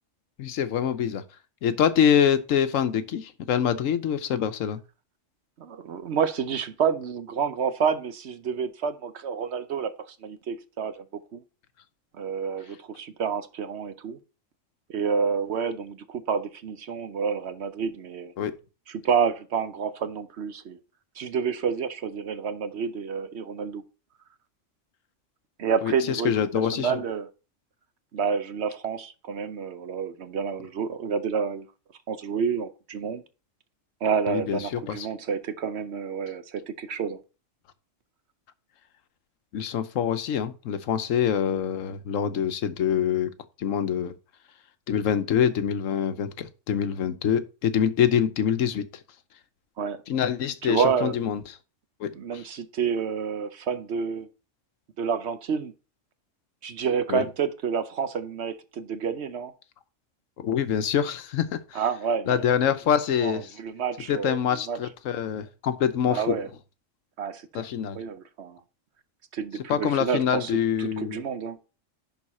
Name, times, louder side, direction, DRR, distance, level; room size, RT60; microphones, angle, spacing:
voice 1, 0.4-1.2 1.6-4.8 18.4-18.5 25.8-27.0 34.3-35.1 39.5-43.3 43.6-44.1 44.9-48.9 50.1-51.4 52.0-52.4 57.1-57.3 60.4-61.8 62.3-63.5 64.1-66.4 67.5-68.0 69.7-71.2, left 8 dB, 90° left, 1.1 m, -25 dB
voice 2, 5.6-9.9 10.2-11.0 11.3-11.4 12.1-14.2 14.9-18.3 18.9-20.8 21.2-23.8 25.6-27.3 28.1-31.7 32.1-33.2 34.0-37.2 49.8-50.0 50.6-51.2 52.1-54.3 55.0-55.7 56.6-59.5 61.7-62.4 63.2-64.8 66.1-66.5 67.2-67.7 67.9-68.6 69.3-70.5 70.8-71.6, right 6 dB, 60° right, 1.0 m, -29 dB
11.0 x 4.0 x 4.2 m
omnidirectional pair, 1.3 m